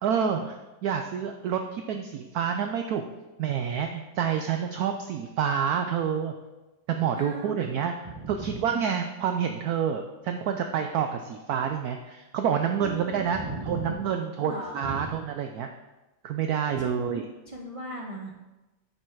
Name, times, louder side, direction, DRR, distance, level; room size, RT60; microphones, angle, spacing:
voice 1, 0.0-3.0 3.4-6.3 6.9-7.9 8.3-13.4 13.6-15.7 16.2-17.3, right 7 dB, 75° right, 6 dB, 0.9 m, -28 dB
voice 2, 7.2-7.6 8.0-8.6 12.8-13.9 14.4-15.1 16.8-17.2 17.5-18.4, right 2 dB, 60° right, -2 dB, 0.3 m, -37 dB
8.7 x 5.4 x 4.6 m, 1.1 s
omnidirectional pair, 2.0 m